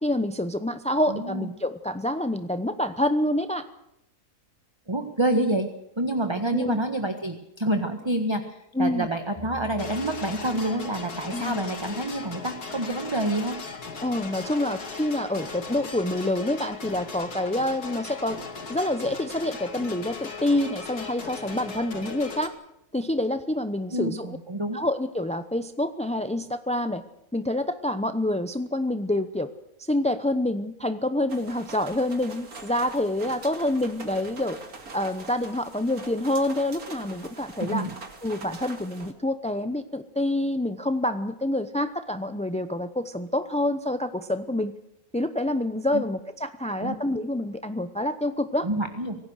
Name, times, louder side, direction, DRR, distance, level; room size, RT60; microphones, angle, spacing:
voice 1, 0.0-3.6 6.5-6.8 8.7-9.1 11.3-11.6 14.0-18.4 18.7-22.5 22.9-24.4 24.7-27.0 27.3-29.5 29.8-34.6 34.9-37.8 38.2-44.7 45.1-48.7, left 1 dB, 10° left, 10 dB, 0.5 m, -27 dB
voice 2, 1.0-1.5 4.9-5.7 6.0-8.4 8.8-13.6 23.9-24.8 37.6-37.9 45.9-46.0 46.8-47.0 48.6-49.2, right 1 dB, 20° right, 6 dB, 1.5 m, -27 dB
sound 1, 9.4-11.6, right 4 dB, 25° left, 4.5 m, -45 dB
sound 2, 9.8-22.5, left 4 dB, 80° left, 2.8 m, -38 dB
sound 3, 31.3-39.1, right 3 dB, 70° right, 2.8 m, -43 dB
25.5 x 18.0 x 6.5 m, 0.81 s
omnidirectional pair, 1.6 m